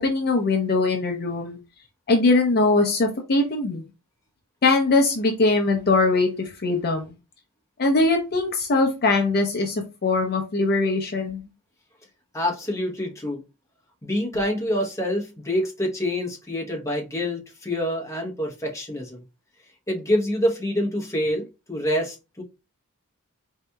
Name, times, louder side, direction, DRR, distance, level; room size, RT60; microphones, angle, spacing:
voice 1, 0.0-1.6 2.1-3.8 4.6-7.2 7.8-11.4, left 3 dB, 45° left, 2 dB, 0.5 m, -21 dB
voice 2, 12.3-13.4 14.0-19.2 19.9-22.4, left 1 dB, 15° left, -1 dB, 0.9 m, -26 dB
4.1 x 2.7 x 2.2 m, 0.27 s
head